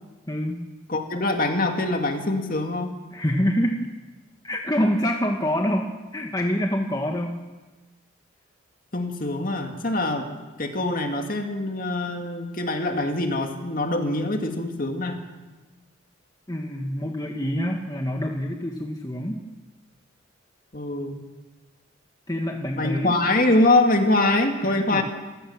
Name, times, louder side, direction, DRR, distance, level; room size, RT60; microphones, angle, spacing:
voice 1, 0.3-0.6 3.1-3.8 4.4-7.3 16.5-19.4 22.3-23.2 24.7-25.0, equal, 20° left, 2 dB, 1.4 m, -26 dB
voice 2, 0.9-2.9 8.9-10.3 10.6-15.2 20.7-21.2 22.8-25.0, left 2 dB, 45° left, 4 dB, 2.3 m, -24 dB
26.5 x 15.5 x 7.3 m, 1.2 s
head